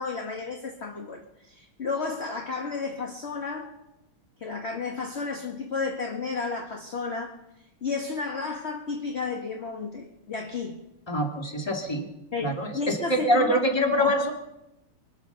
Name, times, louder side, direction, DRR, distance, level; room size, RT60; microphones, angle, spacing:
voice 1, 0.0-3.7 4.4-7.3 7.8-10.8 12.3-14.1, left 4 dB, 35° left, 2 dB, 1.5 m, -32 dB
voice 2, 11.1-12.1 12.4-14.3, equal, 10° left, 2 dB, 2.2 m, -25 dB
24.5 x 8.6 x 6.8 m, 0.90 s
omnidirectional pair, 2.3 m